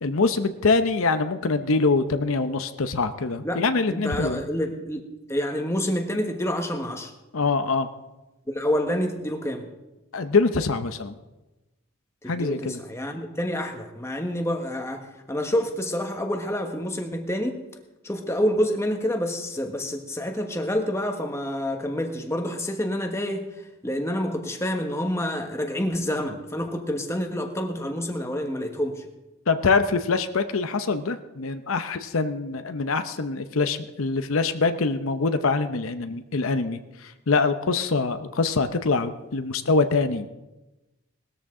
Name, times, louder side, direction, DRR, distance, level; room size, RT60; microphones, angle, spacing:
voice 1, 0.0-4.4 7.3-7.9 10.1-11.1 12.3-12.8 29.5-40.3, left 4 dB, 75° left, 9 dB, 0.7 m, -24 dB
voice 2, 3.9-5.0 5.3-7.1 8.5-9.7 12.2-17.6 18.0-23.5 23.8-29.0, equal, 15° left, 4 dB, 1.2 m, -28 dB
19.5 x 13.5 x 3.8 m, 1.1 s
head